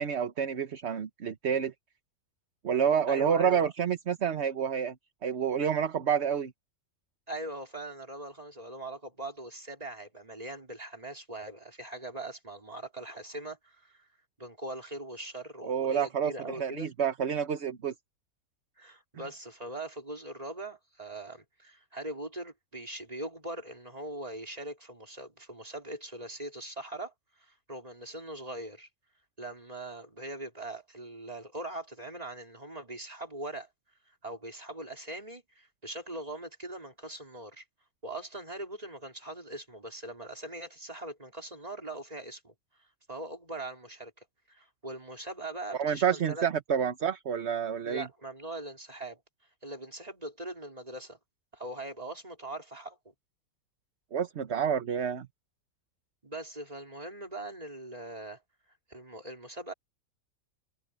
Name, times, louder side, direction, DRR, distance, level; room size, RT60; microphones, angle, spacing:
voice 1, 0.0-1.7 2.6-4.9 5.2-6.5 15.7-17.9 45.8-48.1 54.1-55.3, right 7 dB, 55° right, 1.3 m, -28 dB
voice 2, 3.1-3.7 7.3-14.1 14.4-16.9 18.8-27.1 27.4-28.9 29.4-33.7 34.2-37.6 38.0-42.5 43.1-46.5 47.8-49.2 49.6-51.2 51.5-53.0 56.2-58.4 58.9-59.7, right 1 dB, 25° right, 4.3 m, -41 dB
omnidirectional pair, 1.5 m